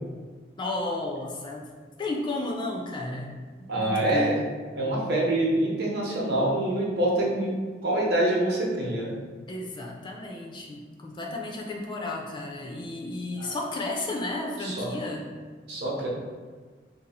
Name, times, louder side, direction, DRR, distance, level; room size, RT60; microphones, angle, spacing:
voice 1, 0.6-1.7 2.0-4.4 9.5-15.4, left 2 dB, 25° left, 0 dB, 0.3 m, -33 dB
voice 2, 3.7-4.4 4.8-7.5 7.8-9.2 13.4-13.6 14.6-14.9 15.7-16.1, right 1 dB, 60° right, -3 dB, 0.7 m, -25 dB
2.6 x 2.3 x 4.0 m, 1.4 s
head